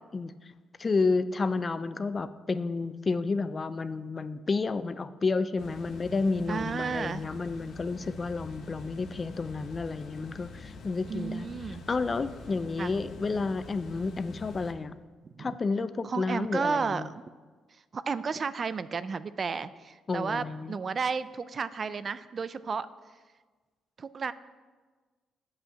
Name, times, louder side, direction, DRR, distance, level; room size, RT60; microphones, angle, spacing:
voice 1, 0.8-11.5 11.9-14.9 15.4-17.1 20.1-20.8, left 4 dB, 35° left, 13 dB, 0.5 m, -30 dB
sound 1, 5.6-14.7, left 3 dB, 70° left, 1.2 m, -46 dB
voice 2, 6.5-7.3 11.1-11.8 12.8-12.9 15.4-15.6 16.0-17.2 17.9-22.9 24.0-24.3, right 5 dB, 40° right, 15 dB, 0.4 m, -32 dB
8.1 x 6.2 x 7.9 m, 1.4 s
cardioid pair, 90°, 0 cm